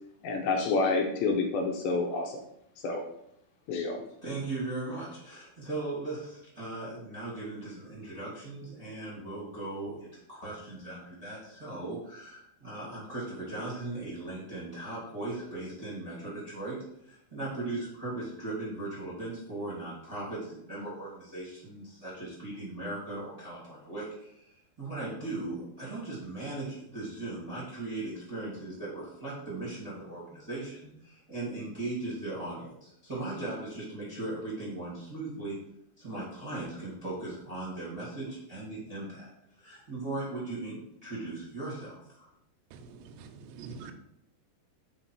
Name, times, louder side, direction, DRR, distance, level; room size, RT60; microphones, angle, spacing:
voice 1, 0.2-2.4 2.8-3.0 3.7-4.0, left 3 dB, 85° left, 3 dB, 2.2 m, -28 dB
voice 2, 4.2-16.8 17.0-35.6 36.0-39.3 39.6-42.3, right 2 dB, 20° right, -8 dB, 1.0 m, -38 dB
voice 3, 42.7-43.9, right 5 dB, 85° right, 5 dB, 2.7 m, -45 dB
5.9 x 4.1 x 4.6 m, 0.76 s
omnidirectional pair, 4.9 m